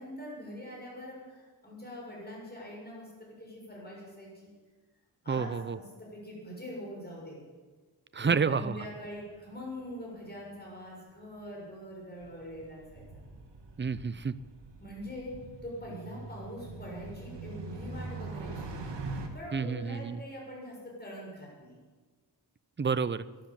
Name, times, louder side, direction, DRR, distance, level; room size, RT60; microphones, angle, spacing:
voice 1, 0.0-4.5 5.2-7.4 8.2-13.2 14.8-21.8, equal, 25° left, -3 dB, 6.5 m, -43 dB
voice 2, 5.3-5.8 8.1-8.8 13.8-14.3 19.5-20.2 22.8-23.2, right 5 dB, 25° right, 15 dB, 0.6 m, -29 dB
sound 1, 9.0-9.6 9.9-10.0 12.0-19.3, right 3 dB, 80° right, 1.9 m, -43 dB
13.0 x 10.5 x 8.8 m, 1.4 s
wide cardioid pair, 105°, 42 cm